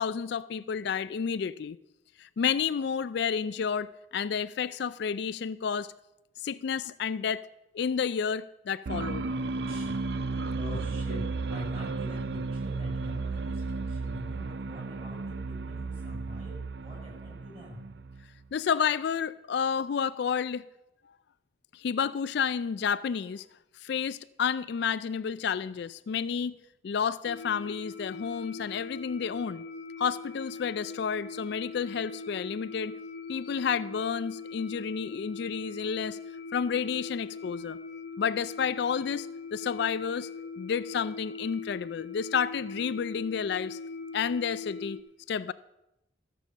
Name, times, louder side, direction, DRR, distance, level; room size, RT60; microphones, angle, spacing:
voice 1, 0.0-1.8 2.2-5.9 6.4-7.4 7.7-9.2 18.5-20.6 21.7-23.4 23.8-26.6 26.8-29.6 30.0-33.0 33.3-36.2 36.5-37.8 38.2-40.3 40.6-43.8 44.1-45.0 45.3-45.5, left 7 dB, 60° left, 0.3 m, -30 dB
sound 1, 8.9-18.5, right 3 dB, 60° right, 0.5 m, -34 dB
voice 2, 9.7-10.1 10.5-17.9, equal, 30° right, 5.3 m, -44 dB
sound 2, 27.2-45.0, left 4 dB, 75° left, 1.1 m, -41 dB
13.5 x 6.8 x 7.2 m
head